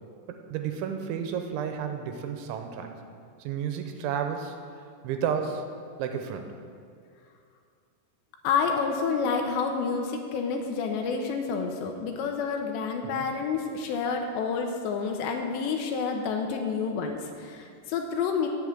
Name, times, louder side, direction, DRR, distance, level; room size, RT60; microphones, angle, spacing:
voice 1, 0.3-2.9 3.4-5.6 6.0-6.5 13.1-13.3, right 7 dB, 85° right, 6 dB, 3.1 m, -32 dB
voice 2, 8.4-18.5, left 5 dB, 80° left, 3 dB, 2.8 m, -29 dB
8.6 x 7.6 x 7.9 m, 2.3 s
omnidirectional pair, 5.4 m